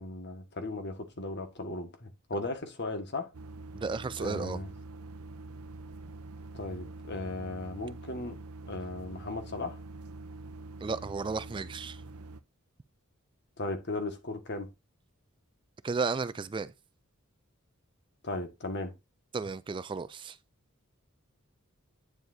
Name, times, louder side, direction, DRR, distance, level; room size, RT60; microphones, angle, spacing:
voice 1, 0.0-3.3 4.2-4.7 6.5-8.4 8.7-9.8 13.6-14.7 18.2-18.9, left 2 dB, 55° left, 1.7 m, -36 dB
sound 1, 3.3-12.4, right 2 dB, 90° right, 0.7 m, -45 dB
voice 2, 3.7-4.6 10.8-12.0 15.8-16.7 19.3-20.4, right 4 dB, 25° right, 0.3 m, -33 dB
9.5 x 7.1 x 2.7 m
head